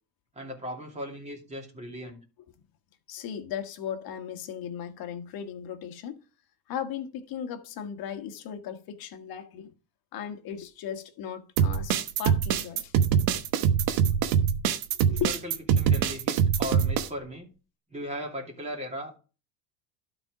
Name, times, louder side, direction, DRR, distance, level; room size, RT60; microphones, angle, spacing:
voice 1, 0.3-2.2 15.1-17.5 17.9-19.1, equal, 15° right, 2.7 m, -37 dB
voice 2, 3.1-6.2 6.7-9.7 10.1-12.9 15.1-15.3, left 9 dB, 45° left, 1.5 m, -36 dB
sound 1, 11.6-17.1, right 8 dB, 65° right, 1.1 m, -24 dB
12.0 x 4.5 x 4.8 m
cardioid pair, 135°, 50 cm